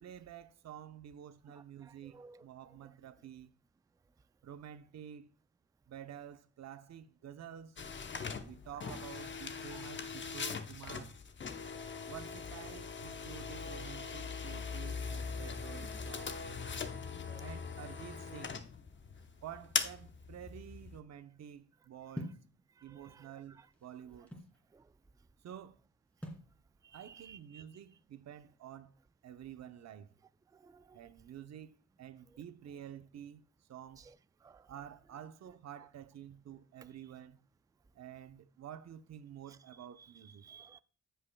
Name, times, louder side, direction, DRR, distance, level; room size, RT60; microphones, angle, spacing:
voice 1, 0.0-3.5 4.4-5.3 5.9-7.8 8.4-11.2 12.1-16.4 17.4-18.6 19.4-22.4 22.8-24.3 25.4-25.8 26.9-28.9 29.2-30.1 30.9-33.4 33.7-34.1 34.7-37.4 37.9-40.5, right 9 dB, 60° right, 0.8 m, -50 dB
voice 2, 1.8-2.4 8.9-9.0 9.7-9.8 17.3-17.4 23.1-23.2 24.7-24.8 26.8-27.6 30.5-31.0 34.4-34.7 40.4-40.8, right 6 dB, 10° right, 0.3 m, -56 dB
sound 1, 7.8-21.0, left 5 dB, 35° left, 0.9 m, -41 dB
sound 2, 22.1-22.5 23.4-24.6 26.2-26.5, equal, 5° left, 2.7 m, -44 dB
15.0 x 5.6 x 2.2 m
cardioid pair, 105°, 31 cm